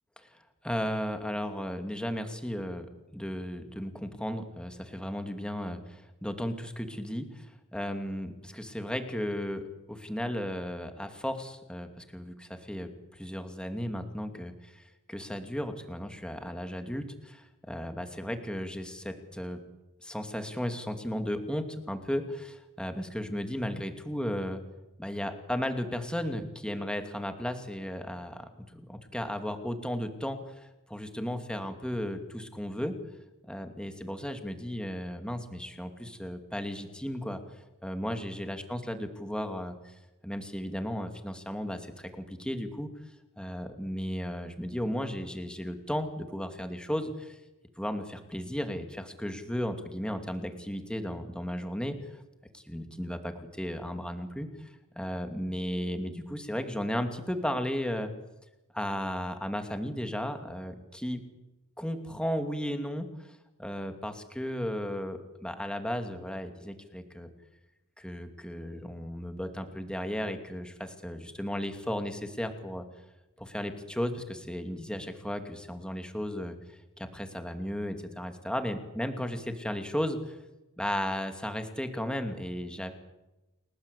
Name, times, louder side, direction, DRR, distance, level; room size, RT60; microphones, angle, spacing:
voice 1, 0.6-2.9 3.1-14.8 15.1-19.6 20.0-24.6 25.0-30.5 30.9-33.0 33.5-37.4 37.8-39.8 40.2-42.9 43.4-47.4 47.8-52.0 52.5-54.5 55.0-58.1 58.7-61.2 61.8-63.3 63.6-67.3 68.0-72.9 73.4-76.6 77.0-80.4 80.8-82.9, equal, 5° left, 6 dB, 2.6 m, -35 dB
29.5 x 18.5 x 8.4 m, 1.0 s
head